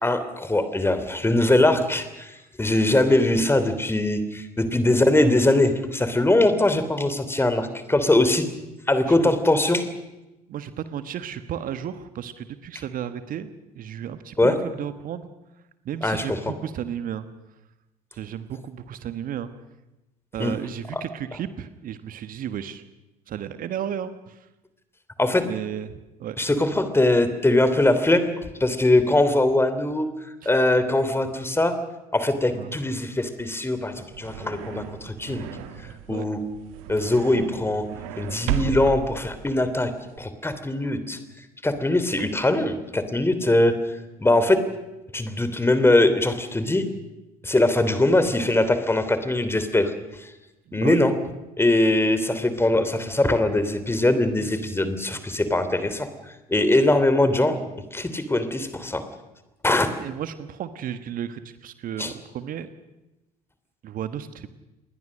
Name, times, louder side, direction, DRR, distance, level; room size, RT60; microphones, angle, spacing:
voice 1, 0.0-8.4 8.9-9.9 14.4-14.5 16.0-16.4 20.4-20.6 20.9-21.0 25.2-25.4 26.4-28.3 28.6-30.1 30.4-31.7 32.1-35.5 36.1-36.4 36.9-37.8 38.2-39.9 40.2-41.2 41.6-43.7 44.2-44.6 45.1-46.9 47.4-49.9 50.2-50.3 50.7-51.1 51.6-56.1 56.5-57.6 57.9-59.0 59.6-59.9 62.0-62.1, left 2 dB, 10° left, 11 dB, 3.2 m, -21 dB
voice 2, 10.5-15.3 15.8-17.3 18.1-19.5 20.3-22.8 23.3-24.4 25.5-25.9 26.2-26.4 30.4-30.5 32.5-32.7 36.1-36.2 50.7-51.0 60.0-62.7 63.8-64.5, right 9 dB, 45° right, 12 dB, 1.4 m, -33 dB
sound 1, 33.8-40.2, right 12 dB, 65° right, 1.9 m, -34 dB
28.5 x 20.5 x 6.5 m, 0.99 s
figure-of-eight pair, 60°, 19 cm